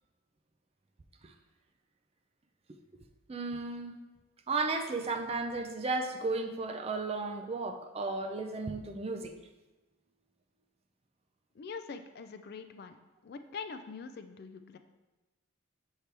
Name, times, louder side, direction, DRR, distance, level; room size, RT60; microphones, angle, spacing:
voice 1, 3.3-3.9 4.5-9.3, right 3 dB, 30° right, 5 dB, 0.4 m, -34 dB
voice 2, 11.6-13.0 13.2-14.8, left 5 dB, 50° left, 9 dB, 0.3 m, -43 dB
6.6 x 4.4 x 3.3 m, 1.1 s
head